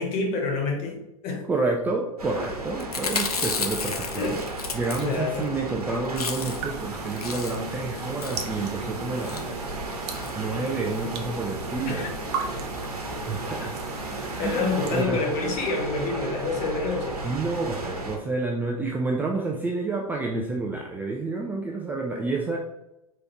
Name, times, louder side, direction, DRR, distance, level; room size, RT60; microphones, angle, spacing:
voice 1, 0.0-1.4 4.1-4.4 5.0-5.5 11.8-12.1 14.1-17.2 21.9-22.4, left 3 dB, 35° left, 3 dB, 1.1 m, -28 dB
voice 2, 1.5-4.4 4.7-9.6 10.3-12.1 13.3-13.7 14.4-15.3 17.2-22.6, right 3 dB, 10° right, 0 dB, 0.4 m, -29 dB
sound 1, 2.2-18.2, right 2 dB, 75° right, 1.1 m, -35 dB
Chewing mastication, 2.8-5.4 5.7-5.8 6.0-6.7 7.1-7.7 8.2-8.5 9.1-9.4 10.1-10.3 10.7-10.8 10.9-11.0, left 5 dB, 75° left, 0.6 m, -32 dB
sound 2, 6.2-15.0, right 5 dB, 45° right, 0.7 m, -38 dB
4.9 x 3.6 x 3.0 m, 0.88 s
figure-of-eight pair, 95°, 20 cm